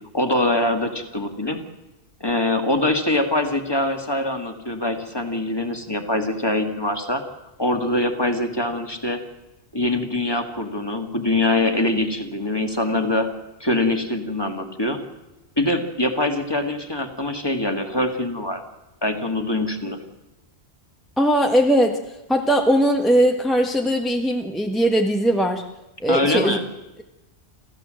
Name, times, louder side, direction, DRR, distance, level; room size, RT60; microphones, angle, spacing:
voice 1, 0.1-1.6 2.2-7.2 7.6-9.2 9.7-13.3 13.6-15.0 15.6-18.6 19.0-20.0 26.1-26.6, left 1 dB, 20° left, 6 dB, 2.0 m, -23 dB
voice 2, 21.2-22.0 22.3-25.6 26.0-26.6, equal, ahead, 3 dB, 1.4 m, -19 dB
27.5 x 15.0 x 7.7 m, 1.0 s
omnidirectional pair, 1.2 m